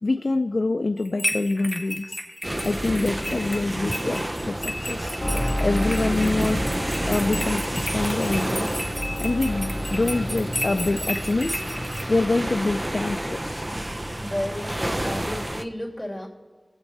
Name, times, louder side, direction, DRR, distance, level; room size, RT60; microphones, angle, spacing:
voice 1, 0.0-2.2 2.6-5.2 5.6-6.7 7.0-8.7 9.2-11.6 12.1-13.7, left 2 dB, 75° left, 7 dB, 0.3 m, -25 dB
sound 1, 1.0-12.0, equal, 10° right, 1.5 m, -33 dB
sound 2, 2.4-15.6, right 1 dB, 30° right, 0.6 m, -30 dB
sound 3, 5.2-12.7 12.9-13.6 13.9-14.0, left 1 dB, 30° left, 0.8 m, -31 dB
voice 2, 14.1-16.3, left 1 dB, 10° left, -1 dB, 2.8 m, -32 dB
21.5 x 8.1 x 4.3 m, 1.3 s
wide cardioid pair, 40°, 0 cm